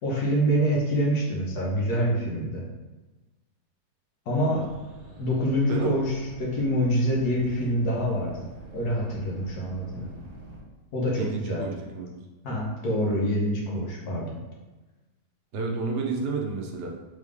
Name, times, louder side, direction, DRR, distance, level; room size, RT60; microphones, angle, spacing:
voice 1, 0.0-2.6 4.3-4.7 5.2-8.5 8.7-10.1 10.9-11.6 12.4-14.3, equal, 65° left, -3 dB, 1.4 m, -26 dB
sound 1, 4.5-10.6, right 2 dB, 45° right, 1.3 m, -46 dB
voice 2, 11.2-12.2 15.5-16.9, right 4 dB, 70° right, 0 dB, 0.5 m, -31 dB
3.9 x 3.4 x 3.4 m, 1.1 s
omnidirectional pair, 1.9 m